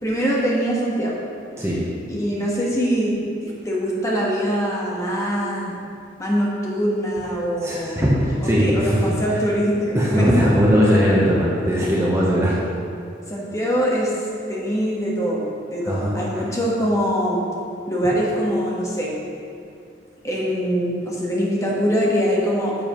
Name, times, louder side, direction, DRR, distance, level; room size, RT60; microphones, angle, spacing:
voice 1, 0.0-1.2 2.1-5.8 6.2-8.0 8.4-10.3 10.9-11.0 13.3-14.1 14.5-15.4 15.7-17.4 17.9-19.2 20.2-22.8, equal, 15° left, -4 dB, 1.3 m, -23 dB
voice 2, 7.6-9.1 9.9-12.6 15.9-16.4, equal, 15° right, -5 dB, 0.9 m, -19 dB
10.0 x 7.0 x 3.0 m, 2.5 s
head